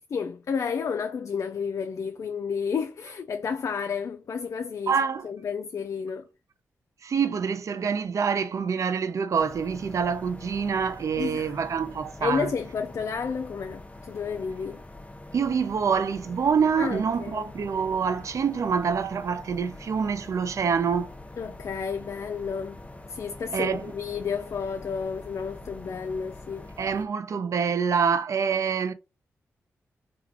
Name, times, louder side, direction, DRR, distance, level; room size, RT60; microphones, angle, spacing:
voice 1, 0.1-5.0 5.2-6.3 11.2-11.5 12.2-14.8 16.8-17.5 21.4-22.8 23.1-26.7, left 6 dB, 60° left, 0.4 m, -31 dB
voice 2, 4.9-5.3 7.0-12.5 15.3-21.1 23.5-23.8 26.8-28.9, right 6 dB, 65° right, 0.5 m, -26 dB
sound 1, 9.4-27.1, left 2 dB, 20° left, 0.7 m, -44 dB
3.3 x 2.3 x 3.6 m
supercardioid pair, 45°, 6 cm